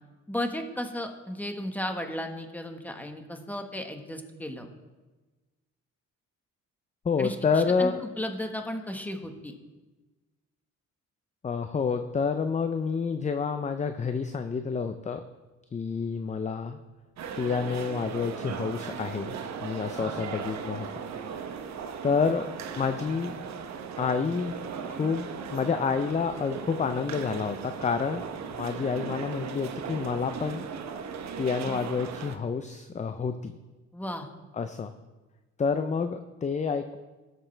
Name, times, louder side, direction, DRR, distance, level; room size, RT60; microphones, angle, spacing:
voice 1, 0.3-4.7 7.2-9.5 20.0-20.2 33.9-34.3, left 1 dB, 5° left, 4 dB, 1.4 m, -35 dB
voice 2, 7.0-8.0 11.4-15.2 15.7-16.8 17.4-20.9 21.6-21.7 22.0-22.5 22.8-23.3 24.0-24.5 24.9-28.2 28.5-30.7 31.4-33.5 34.5-34.9 35.6-37.0, left 5 dB, 25° left, 8 dB, 0.5 m, -29 dB
sound 1, 17.2-32.4, right 6 dB, 65° right, 1.0 m, -37 dB
18.5 x 6.8 x 3.3 m, 1.2 s
cardioid pair, 90°, 30 cm